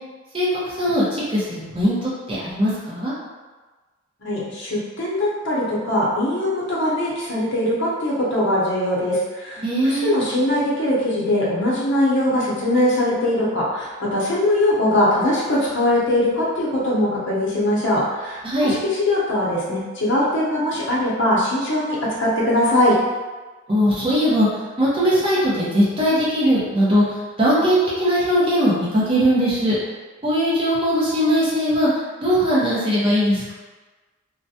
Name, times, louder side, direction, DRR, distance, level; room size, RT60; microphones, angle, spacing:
voice 1, 0.3-3.1 9.6-10.1 18.4-18.7 23.7-24.5 24.8-29.8 30.2-31.9 32.2-33.5, equal, 25° right, -8 dB, 0.7 m, -20 dB
voice 2, 4.2-22.9, left 1 dB, 60° left, -6 dB, 0.7 m, -21 dB
2.4 x 2.1 x 2.7 m, 1.3 s
head